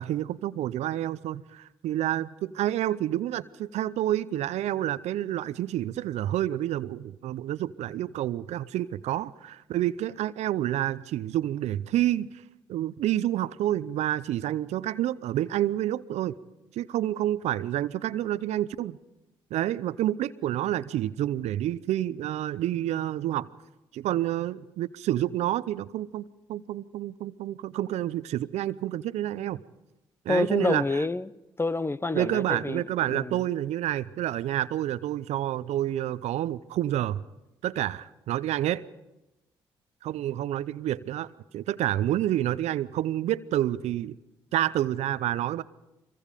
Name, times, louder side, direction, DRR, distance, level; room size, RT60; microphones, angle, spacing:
voice 1, 0.0-12.3 12.7-16.4 16.7-19.0 19.5-23.5 23.9-29.6 30.2-30.8 32.1-37.2 37.6-38.8 40.0-44.2 44.5-45.6, right 13 dB, 70° right, 0.6 m, -29 dB
voice 2, 30.3-31.3 31.6-33.4, left 3 dB, 20° left, 0.8 m, -28 dB
24.0 x 23.0 x 5.2 m
hypercardioid pair, 50°, 12 cm